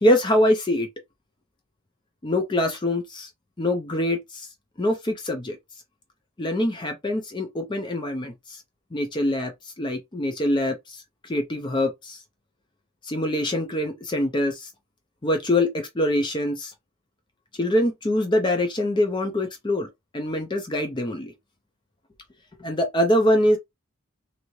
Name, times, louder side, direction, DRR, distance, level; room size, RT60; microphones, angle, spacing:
voice 1, 0.0-0.9 2.2-3.3 3.6-4.5 4.8-5.6 6.4-8.6 8.9-9.5 9.8-11.0 11.2-12.2 13.0-14.7 15.2-16.7 17.6-21.3 22.6-23.6, left 1 dB, 20° left, 0.4 m, -24 dB
2.7 x 2.5 x 3.0 m
head